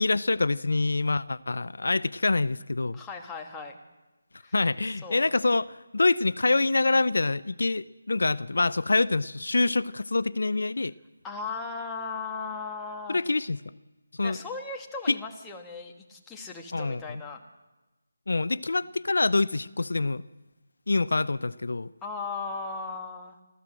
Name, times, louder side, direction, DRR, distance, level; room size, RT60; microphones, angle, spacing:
voice 1, 0.0-3.0 4.5-10.9 13.1-13.6 14.2-14.4 15.1-15.2 16.7-17.2 18.3-20.2 20.9-21.9, left 3 dB, 75° left, 18 dB, 0.6 m, -26 dB
voice 2, 2.9-3.8 4.4-4.5 5.0-5.3 11.2-13.2 14.2-17.4 22.0-23.4, left 4 dB, 5° left, 0 dB, 1.4 m, -37 dB
25.5 x 15.0 x 7.6 m, 1.1 s
figure-of-eight pair, 175°, 0 cm